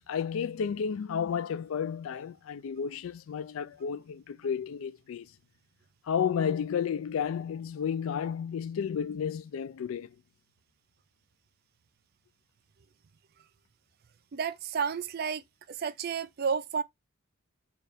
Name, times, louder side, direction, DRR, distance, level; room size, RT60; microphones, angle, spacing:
voice 1, 0.0-5.3 6.1-10.1, left 7 dB, 75° left, 0.3 m, -32 dB
voice 2, 14.3-16.8, right 6 dB, 45° right, 0.3 m, -32 dB
4.4 x 2.4 x 3.4 m
head